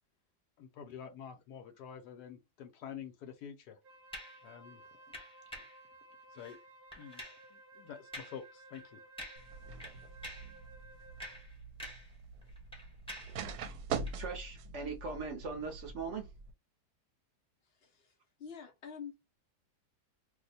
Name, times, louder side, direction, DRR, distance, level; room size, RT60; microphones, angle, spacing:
voice 1, 0.6-3.8 4.4-5.0 5.5-5.7 6.3-6.6 6.9-7.2 7.5-9.0, left 8 dB, 75° left, 1.2 m, -48 dB
Wind instrument woodwind instrument, 3.8-11.5, right 2 dB, 45° right, 1.2 m, -57 dB
sound 1, 4.1-4.4 5.1-5.8 6.4-6.6 6.9-7.5 8.1-8.4 8.7-8.9 9.2-9.5 9.8-10.6 11.0-12.2 12.4-13.4 14.0-14.2, equal, 5° left, 0.7 m, -47 dB
sound 2, 9.4-16.5, right 5 dB, 75° right, 1.1 m, -44 dB
voice 2, 14.2-16.3, right 4 dB, 60° right, 0.8 m, -40 dB
voice 3, 17.6-19.2, left 7 dB, 60° left, 0.6 m, -48 dB
2.8 x 2.1 x 4.0 m
omnidirectional pair, 1.8 m